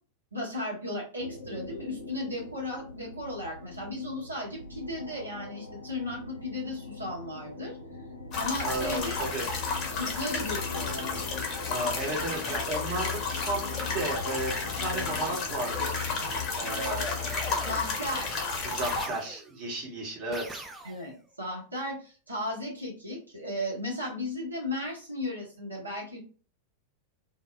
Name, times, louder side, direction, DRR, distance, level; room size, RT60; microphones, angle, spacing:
voice 1, 0.3-7.8 8.4-9.2 10.0-11.2 17.7-18.4 20.8-26.2, left 1 dB, 80° right, -3 dB, 0.9 m, -35 dB
sound 1, 1.2-17.3, left 3 dB, 85° left, 0.4 m, -43 dB
sound 2, 8.3-19.1, left 4 dB, 35° left, 0.7 m, -32 dB
voice 2, 8.6-9.5 11.7-16.0 16.6-17.7 18.6-20.6, right 2 dB, 40° right, -1 dB, 0.9 m, -34 dB
sound 3, 16.2-16.7 17.3-18.2 18.8-19.7 20.3-21.2, right 2 dB, 10° right, 0.4 m, -44 dB
2.0 x 2.0 x 3.1 m, 0.41 s
figure-of-eight pair, 90°, 0 cm